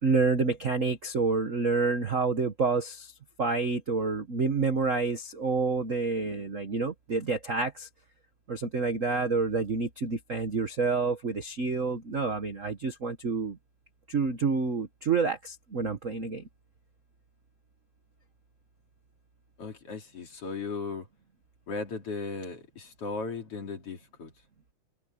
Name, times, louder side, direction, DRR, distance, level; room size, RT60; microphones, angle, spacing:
voice 1, 0.0-3.1 3.4-7.9 8.5-13.6 14.1-16.4, right 4 dB, 65° right, 0.7 m, -28 dB
voice 2, 19.6-21.1 21.7-24.3, left 4 dB, 50° left, 3.9 m, -36 dB
omnidirectional pair, 3.5 m